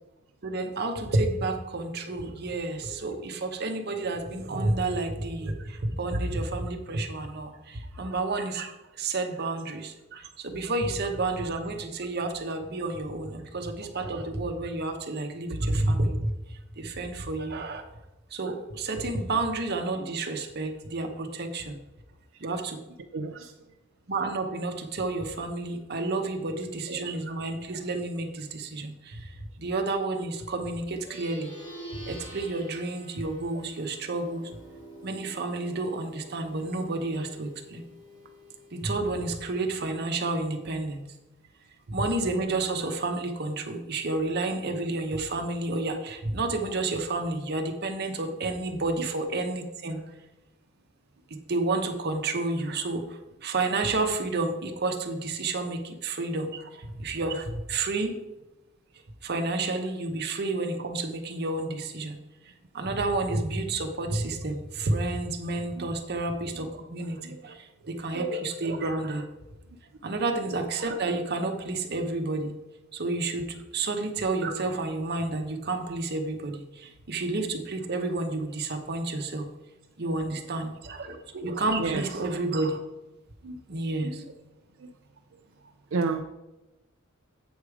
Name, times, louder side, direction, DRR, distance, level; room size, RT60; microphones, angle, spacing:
voice 1, 0.4-17.8 18.3-21.8 22.4-22.8 24.1-29.3 29.6-31.5 31.9-34.5 35.0-37.8 38.7-41.0 41.9-50.0 51.3-58.2 59.2-62.2 62.7-69.2 70.0-72.5 72.9-73.5 73.7-79.5 80.0-82.8 83.7-84.2, right 2 dB, 50° right, 4 dB, 0.9 m, -30 dB
voice 2, 23.1-23.5 65.8-65.9 67.2-67.6 81.8-82.0 83.4-83.6 84.0-84.1 84.8-84.9 85.9-86.2, right 4 dB, 70° right, 4 dB, 0.5 m, -31 dB
Plucked string instrument, 30.9-40.6, right 1 dB, 25° left, 2.3 m, -47 dB
8.1 x 4.9 x 4.8 m, 0.99 s
head